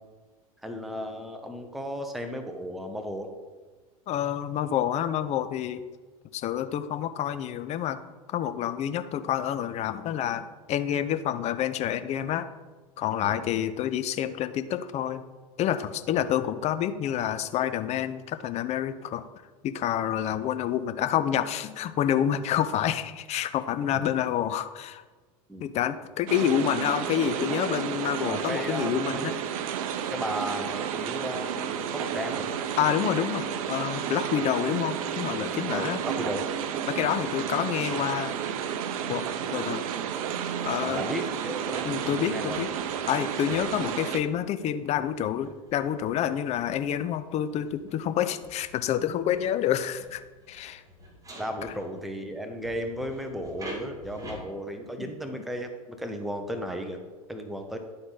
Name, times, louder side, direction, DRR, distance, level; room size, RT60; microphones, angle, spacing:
voice 1, 0.6-3.3 13.2-13.4 16.1-16.2 23.9-24.1 25.5-25.7 28.2-29.2 30.1-32.5 35.7-36.5 40.8-42.7 43.5-43.6 51.4-57.0 57.3-57.8, equal, ahead, 5 dB, 0.7 m, -35 dB
voice 2, 4.1-5.8 6.3-8.0 8.3-12.5 13.0-15.2 15.6-19.3 19.6-25.0 25.6-29.4 32.8-36.0 36.9-38.4 39.1-39.2 39.5-39.8 40.6-41.0 41.8-42.7 43.1-50.2 50.5-50.8 51.6-51.7 55.0-55.1, left 10 dB, 35° left, 11 dB, 0.5 m, -28 dB
sound 1, 26.3-44.2, right 8 dB, 70° right, 0.6 m, -31 dB
sound 2, 41.6-52.2 52.6-54.4, right 1 dB, 20° right, 2.1 m, -47 dB
11.0 x 3.9 x 3.9 m, 1.3 s
hypercardioid pair, 95°, 19 cm